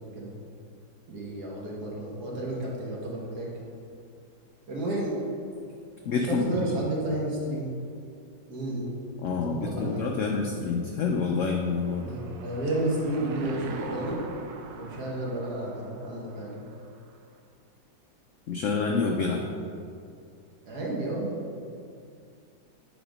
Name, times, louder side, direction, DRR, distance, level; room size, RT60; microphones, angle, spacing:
voice 1, 1.1-3.5 4.7-5.2 6.3-7.7 8.5-8.9 9.4-10.1 12.1-14.2 14.7-16.6 20.7-21.3, right 1 dB, 65° right, -4 dB, 1.9 m, -31 dB
voice 2, 6.0-6.5 9.2-12.2 18.5-19.5, left 4 dB, 80° left, 2 dB, 0.7 m, -27 dB
Car passing by / Engine, 10.6-17.2, right 4 dB, 85° right, 1.3 m, -44 dB
8.0 x 3.6 x 5.0 m, 2.4 s
omnidirectional pair, 1.9 m